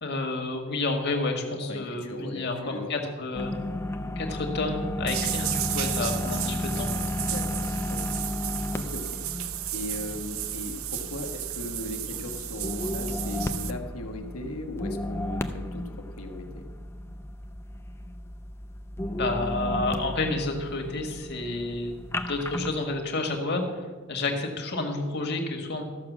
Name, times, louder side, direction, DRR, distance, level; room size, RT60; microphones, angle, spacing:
voice 1, 0.0-3.5 4.1-7.0 19.1-21.9 22.3-23.8 24.1-25.8, left 2 dB, 50° left, 3 dB, 1.7 m, -30 dB
voice 2, 1.7-3.1 7.3-7.5 7.9-8.0 8.7-9.2 9.7-16.7, left 2 dB, 90° left, 4 dB, 1.5 m, -38 dB
sound 1, 3.3-22.8, left 1 dB, 10° left, 0.5 m, -34 dB
sound 2, 5.1-13.7, right 13 dB, 70° right, 0.6 m, -34 dB
13.5 x 6.2 x 7.3 m, 1.5 s
head